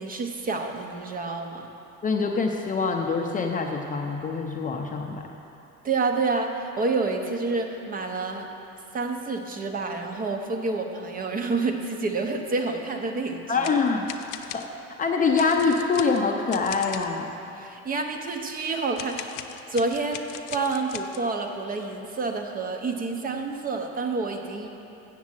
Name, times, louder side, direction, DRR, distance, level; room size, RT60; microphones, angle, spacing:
voice 1, 0.0-1.7 5.8-8.5 8.9-13.6 17.6-19.3 19.7-20.2 20.5-24.7, right 3 dB, 25° right, 4 dB, 0.6 m, -28 dB
voice 2, 2.0-5.2 13.5-14.1 14.5-14.6 15.0-17.3, left 4 dB, 25° left, 2 dB, 0.5 m, -24 dB
sound 1, 13.5-14.7 15.3-17.3 19.0-21.3, left 11 dB, 75° left, 0.6 m, -39 dB
7.4 x 7.2 x 7.4 m, 2.9 s
cardioid pair, 150°, 34 cm